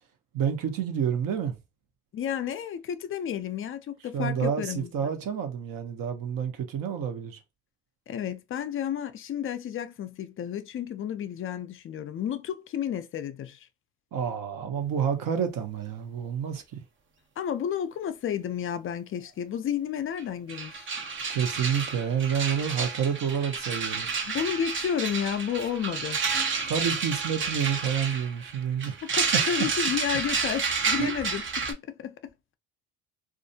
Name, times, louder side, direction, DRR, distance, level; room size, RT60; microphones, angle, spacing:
voice 1, 0.3-1.6 4.1-7.4 14.1-16.8 21.3-24.1 26.7-29.0 31.0-31.1, right 7 dB, 60° right, 0.8 m, -29 dB
voice 2, 2.1-5.1 8.1-13.6 17.4-20.9 24.3-26.2 29.2-32.1, left 9 dB, 35° left, 0.4 m, -31 dB
sound 1, 20.2-20.3 20.5-31.7, right 5 dB, 30° right, 0.5 m, -30 dB
2.4 x 2.1 x 2.6 m
supercardioid pair, 90°, 38 cm